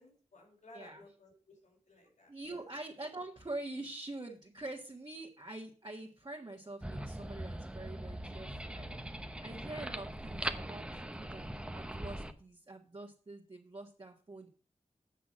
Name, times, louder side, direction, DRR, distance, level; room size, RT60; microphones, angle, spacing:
voice 1, 0.0-2.6, left 2 dB, 85° left, 1 dB, 4.3 m, -58 dB
voice 2, 2.3-14.5, right 2 dB, 35° right, -1 dB, 1.6 m, -45 dB
sound 1, 6.8-12.3, right 1 dB, 10° right, 0.8 m, -41 dB
8.3 x 5.9 x 7.4 m, 0.41 s
wide cardioid pair, 95°, 12 cm